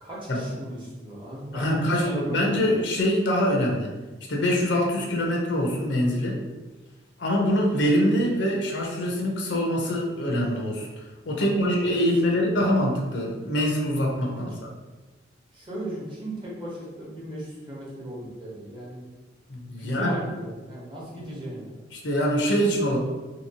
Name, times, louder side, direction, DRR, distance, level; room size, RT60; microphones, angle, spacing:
voice 1, 0.0-2.7 11.4-11.9 12.2-12.7 14.4-14.5 15.5-19.0 19.8-21.7, right 1 dB, 25° right, -6 dB, 0.8 m, -36 dB
voice 2, 1.5-3.9 4.3-6.4 7.2-10.9 11.3-14.5 19.5-20.2 21.9-23.0, equal, 70° left, -1 dB, 0.6 m, -24 dB
2.8 x 2.8 x 2.8 m, 1.2 s
head